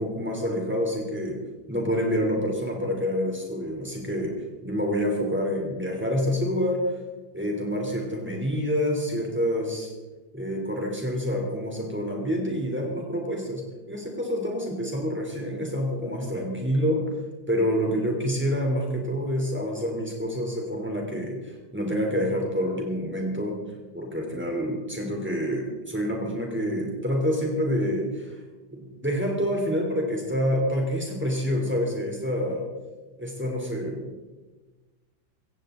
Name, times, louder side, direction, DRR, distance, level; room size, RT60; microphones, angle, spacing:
voice 1, 0.0-1.4 1.7-4.3 4.6-7.0 7.3-9.9 10.3-17.0 17.5-23.6 23.9-28.4 28.7-32.7 33.2-34.1, equal, 5° right, 0 dB, 3.3 m, -27 dB
16.5 x 15.5 x 3.9 m, 1.2 s
omnidirectional pair, 2.0 m